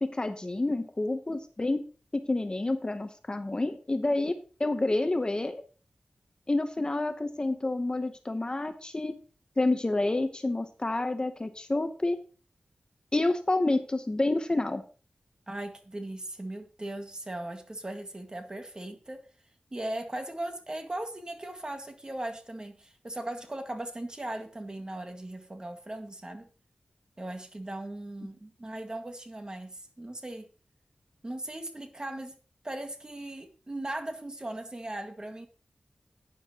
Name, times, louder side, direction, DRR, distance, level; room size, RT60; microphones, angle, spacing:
voice 1, 0.0-1.8 2.1-4.3 4.6-5.6 6.5-9.2 9.6-12.2 13.1-14.8, left 2 dB, 30° left, 8 dB, 0.9 m, -28 dB
voice 2, 15.5-19.3 19.7-26.5 27.2-30.5 31.2-32.4 32.6-35.5, right 1 dB, 30° right, 5 dB, 1.8 m, -38 dB
12.0 x 9.3 x 2.9 m, 0.37 s
wide cardioid pair, 80°, 3 cm